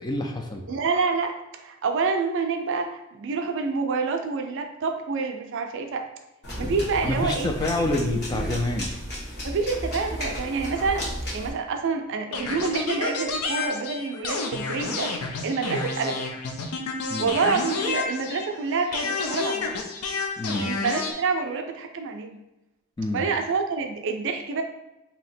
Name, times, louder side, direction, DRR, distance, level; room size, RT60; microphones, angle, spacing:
voice 1, 0.0-0.6 7.0-8.9 17.1-17.3 20.4-20.7 23.0-23.3, left 2 dB, 20° left, 3 dB, 0.3 m, -27 dB
voice 2, 0.7-6.0 6.6-7.5 9.4-11.0 11.3-15.1 15.4-16.2 17.2-19.7 20.6-22.4 23.1-24.6, right 4 dB, 55° right, 5 dB, 0.4 m, -27 dB
sound 1, 6.4-11.5, equal, 50° left, 1.3 m, -33 dB
sound 2, 12.3-18.6 18.9-21.1, left 4 dB, 80° left, 0.5 m, -30 dB
2.8 x 2.8 x 4.2 m, 0.98 s
head